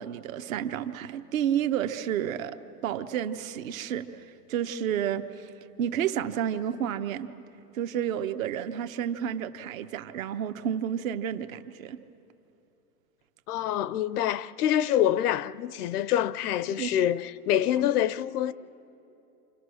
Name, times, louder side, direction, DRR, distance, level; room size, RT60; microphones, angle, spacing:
voice 1, 0.0-2.6 2.8-5.5 5.8-7.3 7.7-12.0 16.8-16.9 17.8-17.9, right 9 dB, 55° right, 1.1 m, -31 dB
voice 2, 13.5-18.5, left 11 dB, 65° left, 0.7 m, -26 dB
29.0 x 27.0 x 6.4 m
supercardioid pair, 160°, 49 cm